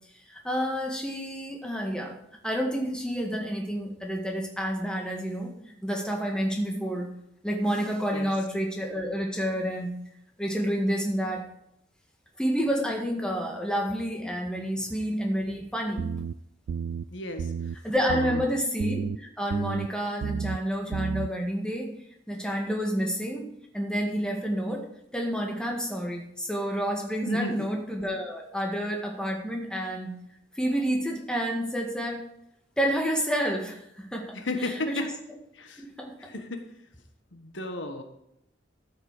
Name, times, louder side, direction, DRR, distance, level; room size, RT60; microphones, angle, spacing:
voice 1, 0.3-2.2 2.4-5.5 5.8-7.1 7.4-9.9 10.4-11.5 12.4-16.1 17.8-21.9 22.3-23.5 23.7-24.8 25.1-30.2 30.6-32.3 32.8-34.4 34.9-35.1 35.8-36.3, equal, 5° left, 1 dB, 1.8 m, -29 dB
sound 1, 16.0-16.3 16.7-17.0 17.4-17.7 18.1-18.5 18.8-19.2 19.5-19.9 20.2-20.6 20.9-21.3, right 6 dB, 85° right, 0.3 m, -31 dB
voice 2, 17.1-17.8 18.1-18.6 27.3-27.7 34.3-35.1 35.6-35.9 36.2-36.8 37.3-38.0, left 2 dB, 80° left, 6 dB, 1.3 m, -34 dB
13.5 x 6.7 x 4.9 m, 0.77 s
head